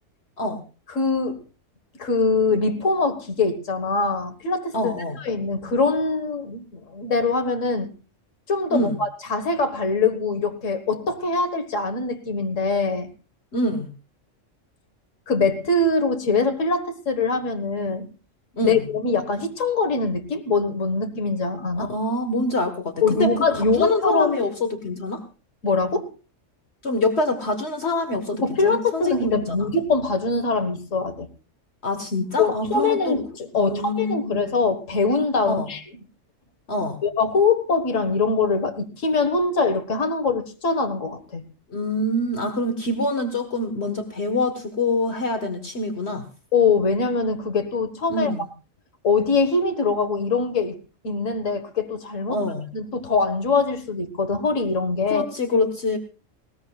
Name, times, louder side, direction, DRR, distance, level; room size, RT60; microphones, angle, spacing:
voice 1, 0.9-1.4 2.0-7.9 8.5-13.1 15.3-18.1 18.6-21.9 23.0-24.4 25.6-26.1 28.4-31.3 32.4-35.8 37.0-41.4 46.5-48.3 49.0-50.8 51.0-52.4 52.7-55.3, left 4 dB, 80° left, 1.9 m, -23 dB
voice 2, 4.7-5.2 8.7-9.0 13.5-13.9 18.5-18.8 21.8-25.2 26.8-29.7 31.8-33.2 33.5-34.4 35.5-35.7 36.7-37.0 41.7-46.2 48.1-48.5 52.3-52.7 55.1-56.0, left 2 dB, 60° left, 1.8 m, -25 dB
20.0 x 19.0 x 2.4 m
omnidirectional pair, 1.3 m